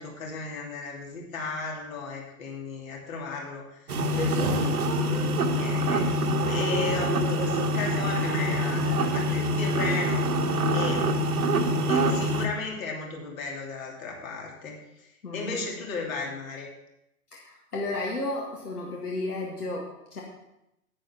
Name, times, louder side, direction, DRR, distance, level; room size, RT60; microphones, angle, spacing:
voice 1, 0.0-10.3 10.7-11.1 11.9-16.7, left 4 dB, 60° left, 0 dB, 3.0 m, -35 dB
sound 1, 3.9-12.5, equal, 70° right, 1.4 m, -25 dB
voice 2, 15.2-15.6 17.3-20.2, left 2 dB, 80° left, -3 dB, 2.1 m, -33 dB
10.0 x 9.6 x 4.4 m, 0.86 s
figure-of-eight pair, 100°, 45 cm